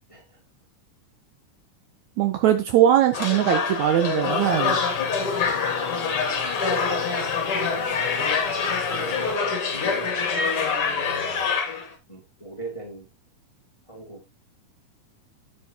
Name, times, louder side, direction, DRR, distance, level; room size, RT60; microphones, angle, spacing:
voice 1, 2.2-4.8, right 11 dB, 75° right, 8 dB, 1.8 m, -20 dB
sound 1, 3.1-11.9, left 5 dB, 50° left, 2.4 m, -25 dB
sound 2, 4.4-9.4, left 10 dB, 90° left, 2.3 m, -38 dB
voice 2, 5.3-7.4 7.7-11.0 12.1-13.1 13.9-14.2, right 2 dB, 15° left, 1 dB, 1.6 m, -40 dB
8.8 x 8.4 x 2.8 m, 0.24 s
omnidirectional pair, 3.7 m